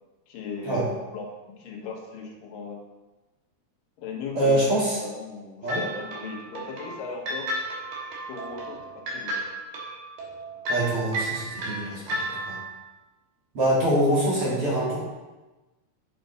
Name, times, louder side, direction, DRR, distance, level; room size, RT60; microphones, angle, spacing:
voice 1, 0.3-2.8 4.0-7.5 8.3-9.5, left 4 dB, 70° left, 0 dB, 2.6 m, -37 dB
voice 2, 4.3-5.0 5.6-5.8 10.7-12.6 13.5-15.0, right 1 dB, 40° right, -7 dB, 3.2 m, -24 dB
sound 1, 5.7-12.8, right 1 dB, 70° right, 3.1 m, -33 dB
8.1 x 6.7 x 3.9 m, 1.1 s
omnidirectional pair, 4.3 m